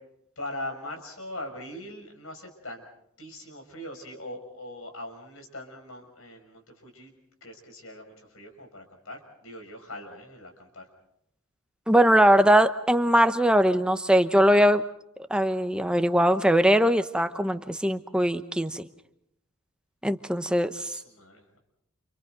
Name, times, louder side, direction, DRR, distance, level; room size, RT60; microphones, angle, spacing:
voice 1, 0.4-2.8 3.2-7.1 7.4-10.9 20.7-21.6, left 1 dB, 70° left, 4 dB, 6.3 m, -41 dB
voice 2, 11.9-14.8 15.3-18.8 20.0-20.9, equal, 5° right, 9 dB, 0.9 m, -21 dB
29.5 x 29.0 x 4.0 m, 0.76 s
head